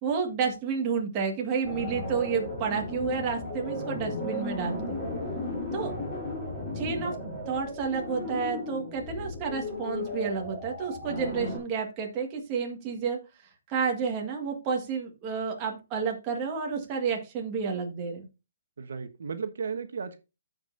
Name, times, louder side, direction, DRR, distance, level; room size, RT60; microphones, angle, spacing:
voice 1, 0.0-5.0 5.7-5.9 6.8-7.2 7.5-13.2 13.7-18.3, right 5 dB, 20° right, 1 dB, 1.8 m, -30 dB
sound 1, 1.6-11.6, left 1 dB, 10° left, 5.4 m, -35 dB
voice 2, 18.8-20.2, right 5 dB, 75° right, 8 dB, 1.2 m, -34 dB
14.5 x 5.2 x 2.6 m, 0.28 s
hypercardioid pair, 165°, 0 cm